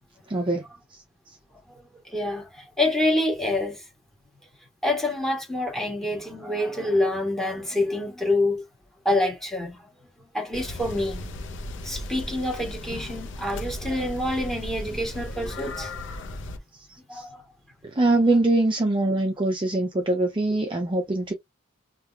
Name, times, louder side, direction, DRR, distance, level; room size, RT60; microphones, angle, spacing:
voice 1, 0.3-0.6 0.9-1.0 17.1-17.2 17.9-21.3, right 2 dB, 25° right, 0.5 m, -23 dB
voice 2, 2.0-3.8 4.8-8.6 9.0-9.8 10.3-11.2 11.8-16.0 17.1-17.4, left 1 dB, ahead, 1.3 m, -26 dB
sound 1, 10.5-16.6, left 1 dB, 60° left, 0.7 m, -36 dB
3.3 x 2.4 x 3.3 m
head